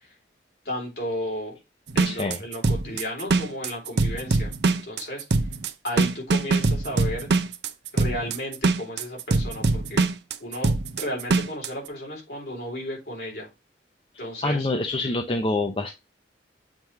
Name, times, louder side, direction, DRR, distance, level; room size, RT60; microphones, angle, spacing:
voice 1, 0.6-1.6 1.9-4.5 4.8-5.2 5.8-7.3 7.9-10.1 10.4-13.5 14.2-14.7, equal, 60° left, -1 dB, 3.0 m, -33 dB
sound 1, 1.9-11.7, right 3 dB, 65° right, 0.6 m, -23 dB
voice 2, 2.0-2.4 14.4-15.9, left 2 dB, 30° left, 5 dB, 0.5 m, -26 dB
7.4 x 3.2 x 4.5 m, 0.24 s
head